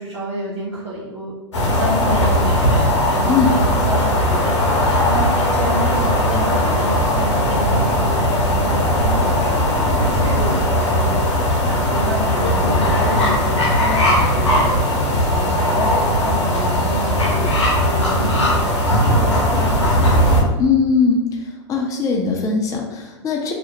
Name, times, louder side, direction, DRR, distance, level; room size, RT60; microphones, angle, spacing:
voice 1, 0.0-11.2 11.6-14.9 15.3-19.8, right 1 dB, 90° right, -9 dB, 0.7 m, -29 dB
sound 1, 1.5-20.4, left 1 dB, 85° left, 0.7 m, -18 dB
voice 2, 20.6-21.2 21.7-23.5, left 5 dB, 25° left, 0 dB, 0.5 m, -19 dB
2.4 x 2.0 x 3.0 m, 1.1 s
hypercardioid pair, 100°, 15 cm